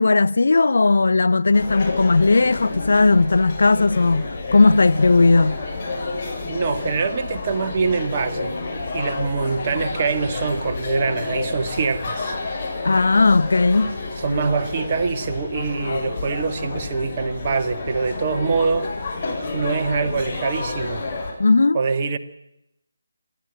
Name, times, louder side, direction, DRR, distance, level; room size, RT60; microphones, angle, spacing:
voice 1, 0.0-5.6 12.8-13.9 21.4-21.8, left 3 dB, 60° left, 0.8 m, -17 dB
sound 1, 1.5-21.3, left 3 dB, 30° left, 7.2 m, -30 dB
voice 2, 6.4-8.6 8.9-12.3 14.2-18.9 19.5-21.0 21.7-22.2, right 4 dB, 30° right, 1.8 m, -24 dB
28.0 x 12.5 x 9.0 m
figure-of-eight pair, 150°, 0 cm